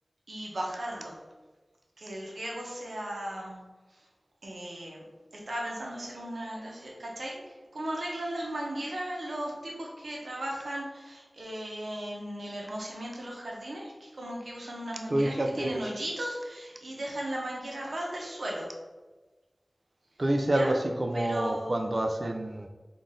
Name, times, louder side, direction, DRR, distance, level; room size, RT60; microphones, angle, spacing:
voice 1, 0.3-1.2 2.0-3.6 4.4-5.0 5.5-7.4 7.7-18.7 20.5-20.7 21.1-21.9, right 1 dB, 80° right, -2 dB, 0.9 m, -36 dB
voice 2, 15.1-15.9 20.2-22.7, right 1 dB, 50° right, 3 dB, 0.4 m, -28 dB
3.8 x 2.5 x 3.6 m, 1.2 s
wide cardioid pair, 45°, 0 cm